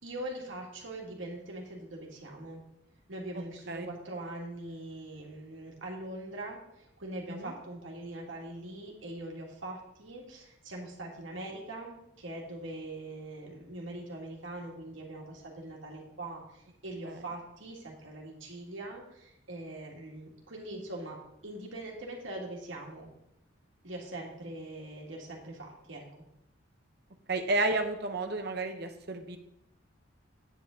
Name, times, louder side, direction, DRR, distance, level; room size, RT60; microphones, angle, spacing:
voice 1, 0.0-2.6 3.1-6.6 7.0-21.2 21.4-23.1 23.8-26.0, right 1 dB, 75° right, -1 dB, 2.1 m, -42 dB
voice 2, 27.3-29.4, right 2 dB, 55° right, 6 dB, 1.0 m, -31 dB
9.3 x 8.1 x 3.8 m, 0.81 s
head